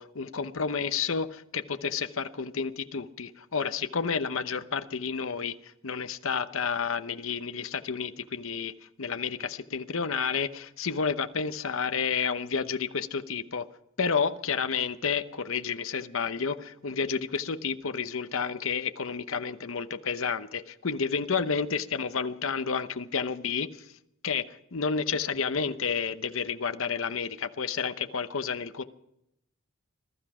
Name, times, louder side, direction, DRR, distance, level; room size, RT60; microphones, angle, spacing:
voice 1, 0.0-8.7 9.0-13.7 14.0-23.7 24.2-28.8, left 5 dB, 70° left, 10 dB, 0.9 m, -30 dB
21.0 x 13.0 x 5.0 m, 0.80 s
head